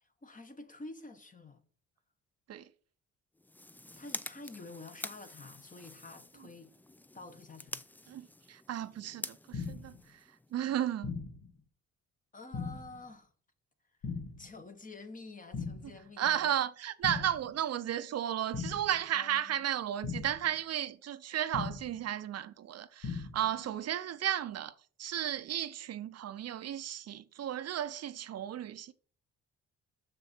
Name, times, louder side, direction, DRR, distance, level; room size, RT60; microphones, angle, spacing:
voice 1, 0.0-1.6 4.0-6.7 7.1-7.8 12.3-13.3 14.4-16.6 19.1-19.6 23.5-23.8, left 3 dB, 25° left, 1.2 m, -49 dB
sound 1, 3.4-10.6, left 2 dB, 5° left, 0.3 m, -47 dB
voice 2, 8.1-10.2 10.5-11.1 16.2-24.7 25.0-28.9, right 11 dB, 55° right, 0.6 m, -34 dB
sound 2, 9.5-10.0 11.0-11.5 12.5-13.0 14.0-14.5 15.5-16.0 17.0-17.5 18.5-19.0 20.0-20.5 21.5-22.0 23.0-23.5, left 4 dB, 75° left, 1.6 m, -39 dB
6.8 x 6.4 x 4.3 m
cardioid pair, 90°, 30 cm